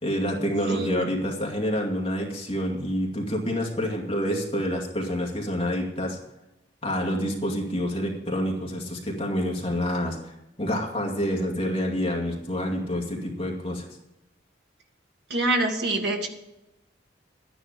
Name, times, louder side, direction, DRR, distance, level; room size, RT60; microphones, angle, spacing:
voice 1, 0.0-6.2 6.8-13.8, equal, 30° left, -1 dB, 2.2 m, -28 dB
voice 2, 0.7-1.1 15.3-16.3, right 2 dB, 60° right, 3 dB, 1.8 m, -26 dB
12.0 x 10.0 x 5.1 m, 0.90 s
head